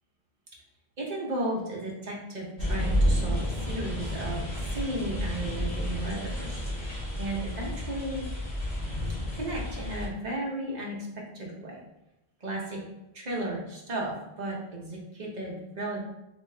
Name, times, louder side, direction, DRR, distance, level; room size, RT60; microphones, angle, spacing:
voice 1, 1.0-8.2 9.3-11.0 11.3-11.8 12.4-12.8 13.1-16.0, right 1 dB, 45° right, -2 dB, 0.9 m, -34 dB
sound 1, 2.6-10.1, equal, 60° left, 1.3 m, -30 dB
3.5 x 2.7 x 3.2 m, 0.91 s
omnidirectional pair, 1.0 m